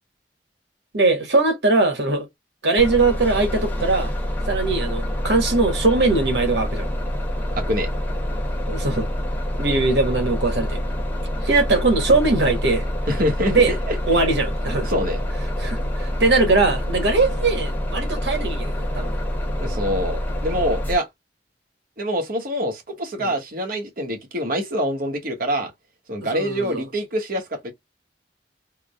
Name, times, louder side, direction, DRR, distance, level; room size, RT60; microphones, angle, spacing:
voice 1, 0.9-2.3 2.6-4.1 4.5-6.9 8.7-9.1 9.6-10.8 11.4-12.9 13.5-13.7 14.1-14.9 15.6-19.2 23.2-23.3 26.3-26.8, right 3 dB, 75° right, 1.4 m, -20 dB
Bus, 2.8-20.9, equal, 10° left, 1.0 m, -26 dB
voice 2, 7.6-7.9 13.1-14.0 14.8-15.2 19.5-21.1 22.0-25.7 26.1-27.7, equal, 55° right, 1.2 m, -25 dB
3.6 x 2.1 x 3.5 m
head